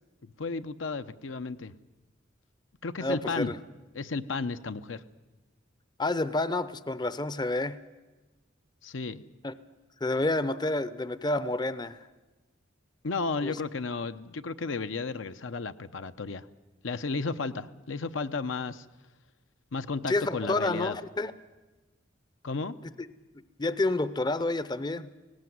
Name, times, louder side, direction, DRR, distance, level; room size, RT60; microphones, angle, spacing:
voice 1, 0.2-1.7 2.8-3.5 3.9-5.0 8.8-9.2 13.0-16.4 16.8-18.8 19.7-20.9 22.4-22.7, left 4 dB, 80° left, 10 dB, 0.8 m, -33 dB
voice 2, 3.0-3.6 6.0-7.8 9.4-9.5 10.0-12.0 13.4-13.6 20.1-21.3 23.6-25.1, left 2 dB, 20° left, 15 dB, 0.6 m, -29 dB
18.0 x 17.5 x 9.4 m, 1.2 s
head